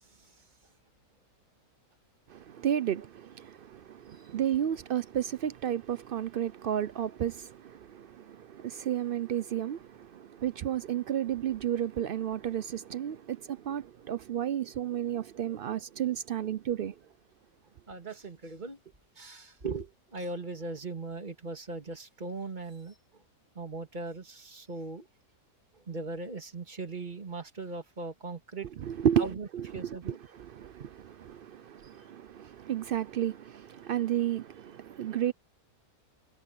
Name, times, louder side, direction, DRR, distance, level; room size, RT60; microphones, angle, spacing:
voice 1, 2.3-16.9 28.8-29.3 29.5-35.3, right 10 dB, 75° right, 0.5 m, -32 dB
voice 2, 17.9-18.8 19.2-23.0 23.6-25.1 25.9-28.7 29.2-29.5 29.7-30.2, right 3 dB, 30° right, 2.4 m, -39 dB
omnidirectional pair, 1.6 m